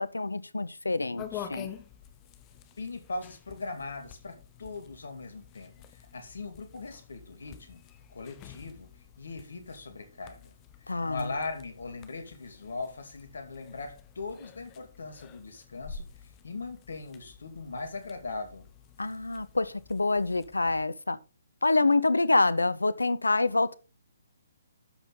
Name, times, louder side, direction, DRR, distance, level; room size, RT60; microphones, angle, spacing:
voice 1, 0.0-1.7 10.9-11.3 19.0-21.2 21.6-23.8, left 3 dB, 85° left, 0.7 m, -26 dB
sound 1, 1.2-20.8, left 8 dB, 25° left, 1.0 m, -49 dB
voice 2, 2.8-7.8 8.1-8.9 9.2-10.5 10.8-18.7, left 3 dB, 70° left, 2.4 m, -40 dB
12.5 x 5.6 x 3.8 m
figure-of-eight pair, 135°, 0 cm